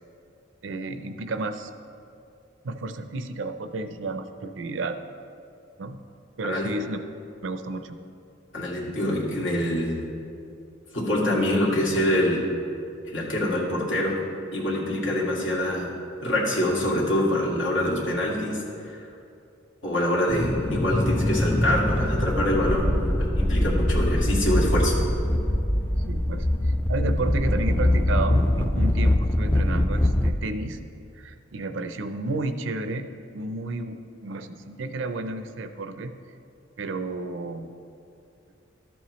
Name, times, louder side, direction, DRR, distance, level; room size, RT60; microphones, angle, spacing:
voice 1, 0.6-1.7 2.6-4.9 5.8-6.0 6.4-7.0 7.4-8.0 26.1-30.8 31.1-33.1 33.3-36.1 36.8-37.7, right 2 dB, 80° right, 9 dB, 0.5 m, -32 dB
voice 2, 8.5-10.0 10.9-12.4 13.1-14.2 14.5-15.9 16.2-19.0 19.8-25.0, left 1 dB, 80° left, -5 dB, 2.0 m, -25 dB
sound 1, 20.3-30.3, left 1 dB, 10° left, 0.3 m, -23 dB
13.5 x 7.0 x 3.1 m, 2.6 s
head